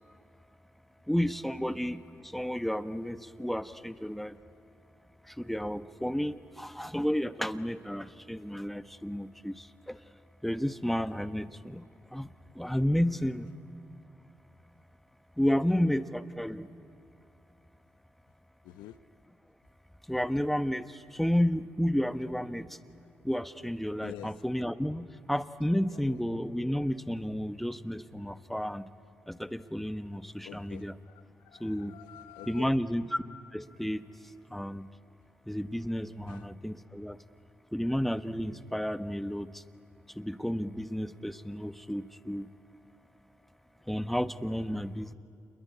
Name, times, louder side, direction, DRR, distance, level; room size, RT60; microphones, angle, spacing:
voice 1, 1.1-4.4 5.2-10.0 10.4-11.8 12.1-13.5 15.4-16.7 20.1-22.8 23.2-28.9 29.3-30.9 31.6-31.9 32.5-33.2 33.5-34.9 35.5-37.2 37.7-39.6 40.1-42.5 43.9-45.1, equal, ahead, 13 dB, 1.3 m, -32 dB
voice 2, 18.6-19.0 24.0-24.3 25.9-26.2 30.4-32.8 36.3-36.5, left 13 dB, 85° left, 14 dB, 0.7 m, -48 dB
28.0 x 22.0 x 9.7 m, 2.6 s
supercardioid pair, 55°, 7 cm